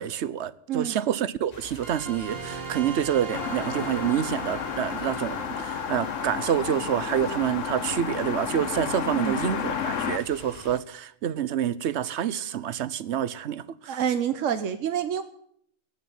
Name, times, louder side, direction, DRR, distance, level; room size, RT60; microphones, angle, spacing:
voice 1, 0.0-14.0, right 9 dB, 65° right, 1.0 m, -28 dB
sound 1, 1.5-10.8, left 6 dB, 40° left, 0.8 m, -46 dB
sound 2, 1.8-8.9, right 4 dB, 50° right, 1.5 m, -40 dB
sound 3, 3.3-10.2, left 7 dB, 75° left, 1.3 m, -31 dB
voice 2, 13.9-15.2, right 8 dB, 80° right, 1.2 m, -27 dB
18.5 x 6.3 x 9.4 m
omnidirectional pair, 1.3 m